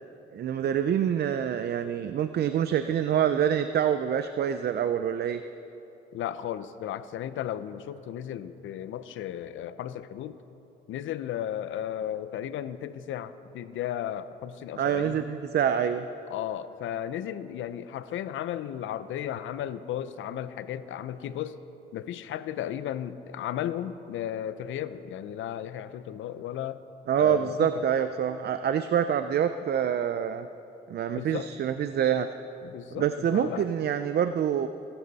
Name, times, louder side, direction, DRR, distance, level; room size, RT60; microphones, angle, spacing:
voice 1, 0.3-5.4 14.8-16.1 27.1-30.5 30.9-32.3 32.9-34.7, right 9 dB, 55° right, 10 dB, 0.5 m, -26 dB
voice 2, 6.1-10.4 10.9-15.2 16.3-21.6 21.9-26.8 27.2-27.8 31.2-31.5 32.6-33.7, left 10 dB, 80° left, 13 dB, 0.7 m, -35 dB
22.5 x 11.5 x 4.1 m, 2.9 s
cardioid pair, 90°, 20 cm